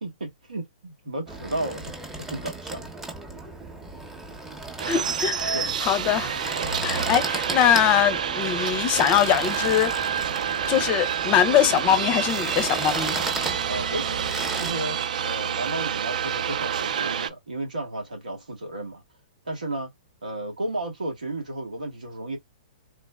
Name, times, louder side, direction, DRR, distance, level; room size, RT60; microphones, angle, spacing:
voice 1, 0.0-1.9 2.2-2.9 5.5-5.7 13.7-14.2 14.5-15.0 15.2-19.0 19.4-19.9 20.2-22.4, right 1 dB, 90° right, 1.5 m, -33 dB
sound 1, 1.3-14.7, right 2 dB, 10° right, 0.8 m, -36 dB
voice 2, 4.8-9.9 10.7-13.2, left 10 dB, 35° left, 0.5 m, -22 dB
sound 2, 4.8-17.3, right 8 dB, 70° right, 0.4 m, -28 dB
3.5 x 2.1 x 2.2 m
hypercardioid pair, 120°, 4 cm